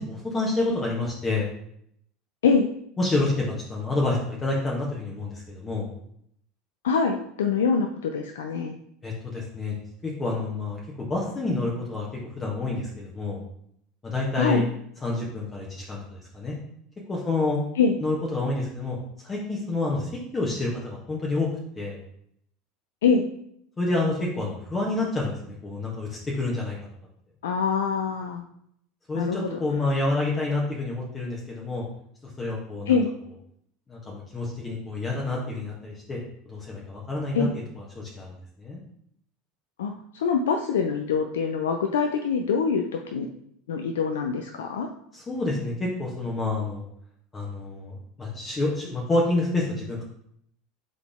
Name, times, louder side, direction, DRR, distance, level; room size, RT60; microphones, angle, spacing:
voice 1, 0.0-1.5 3.0-5.9 9.0-9.7 10.0-12.1 12.4-13.4 14.0-14.6 15.0-16.5 17.1-17.6 18.0-19.0 19.2-21.5 21.7-22.0 23.8-26.8 29.1-31.8 32.4-33.0 33.9-36.2 36.5-38.8 45.1-46.8 47.3-50.0, left 2 dB, 25° left, -3 dB, 1.2 m, -28 dB
voice 2, 6.8-8.7 14.4-14.6 17.8-18.0 23.0-23.3 27.4-28.4 29.2-29.4 32.9-33.1 37.3-37.5 39.8-43.3 43.7-44.9, left 5 dB, 80° left, 5 dB, 0.4 m, -24 dB
3.8 x 3.7 x 3.6 m, 0.70 s
hypercardioid pair, 80°, 0 cm